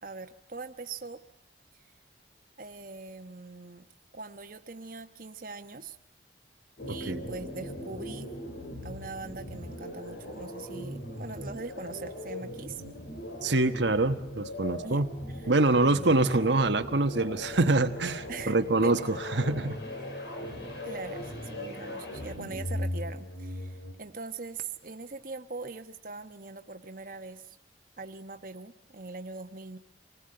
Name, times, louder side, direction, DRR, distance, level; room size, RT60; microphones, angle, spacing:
voice 1, 0.0-1.2 2.6-3.8 4.1-6.0 6.9-8.3 8.8-12.8 14.8-15.0 15.3-15.5 15.8-16.1 18.3-19.0 20.8-27.6 28.0-29.8, right 3 dB, 45° right, 6 dB, 1.2 m, -42 dB
sound 1, 6.8-23.9, left 1 dB, 60° left, 5.2 m, -39 dB
voice 2, 13.4-15.1 15.5-19.8, right 2 dB, 70° right, 7 dB, 1.2 m, -25 dB
26.5 x 20.0 x 7.8 m, 0.77 s
head